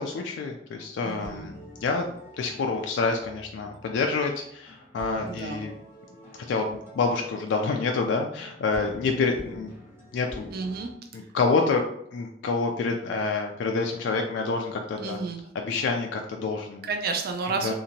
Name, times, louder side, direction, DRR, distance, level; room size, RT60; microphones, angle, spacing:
voice 1, 0.0-1.5 1.8-5.7 6.3-9.7 10.1-10.5 11.1-11.8 12.1-15.2 15.5-16.9 17.6-17.7, left 4 dB, 75° left, 3 dB, 0.3 m, -27 dB
sound 1, 0.8-10.9, equal, 15° right, 1.1 m, -47 dB
voice 2, 1.0-1.5 5.2-5.6 10.5-10.9 15.0-15.4 16.8-17.7, right 4 dB, 55° right, 4 dB, 0.4 m, -31 dB
2.8 x 2.5 x 2.6 m, 0.71 s
head